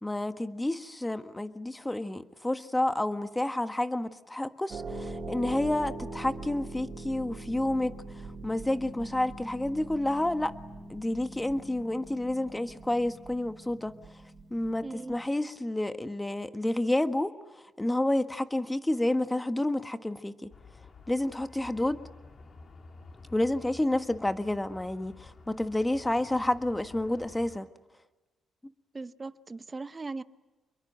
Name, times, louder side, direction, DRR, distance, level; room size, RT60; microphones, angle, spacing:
voice 1, 0.0-10.5 10.9-14.0 14.5-17.4 17.8-20.5 21.1-22.0 23.3-27.7, left 1 dB, 10° left, 1.5 m, -30 dB
Harp, 4.7-15.3, right 2 dB, 40° right, 5.5 m, -42 dB
voice 2, 14.8-15.2 28.9-30.2, right 3 dB, 25° right, 1.0 m, -39 dB
sound 1, 20.5-27.6, left 3 dB, 40° left, 3.0 m, -51 dB
28.0 x 22.5 x 9.0 m
cardioid pair, 90°, 0 cm